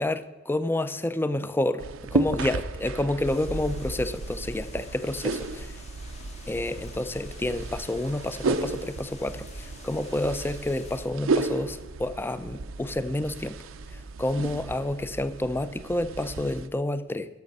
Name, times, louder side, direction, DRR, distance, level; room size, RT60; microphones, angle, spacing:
voice 1, 0.0-5.7 6.5-13.6 13.9-17.3, left 1 dB, 10° left, 13 dB, 0.4 m, -29 dB
sound 1, 1.8-16.7, right 3 dB, 80° right, 0.5 m, -33 dB
sound 2, 3.2-11.1, left 4 dB, 35° left, 0.9 m, -50 dB
sound 3, 6.0-11.0, equal, 75° left, 3.8 m, -50 dB
13.0 x 6.0 x 5.3 m, 1.3 s
head